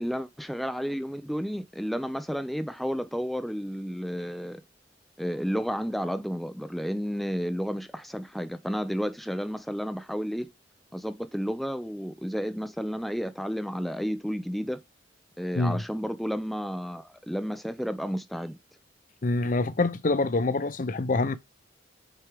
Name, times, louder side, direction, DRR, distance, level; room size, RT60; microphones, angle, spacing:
voice 1, 0.0-4.6 5.2-10.5 10.9-14.8 15.4-18.6, equal, ahead, 0.4 m, -32 dB
voice 2, 19.2-21.4, left 2 dB, 45° left, 0.6 m, -26 dB
7.6 x 4.8 x 3.4 m
head